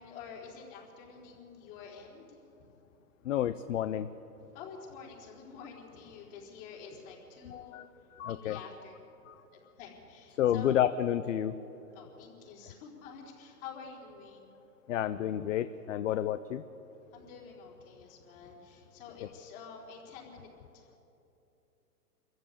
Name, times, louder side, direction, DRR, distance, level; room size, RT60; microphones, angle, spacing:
voice 1, 0.0-2.4 3.3-3.4 4.3-7.8 8.1-9.2 9.5-10.8 11.9-14.5 17.1-21.0, left 6 dB, 35° left, -1 dB, 4.6 m, -49 dB
voice 2, 3.2-4.1 7.4-7.9 8.2-8.7 9.3-9.4 10.4-11.5 14.9-16.6, left 10 dB, 50° left, 13 dB, 0.8 m, -30 dB
25.5 x 14.5 x 8.6 m, 3.0 s
hypercardioid pair, 145°, 47 cm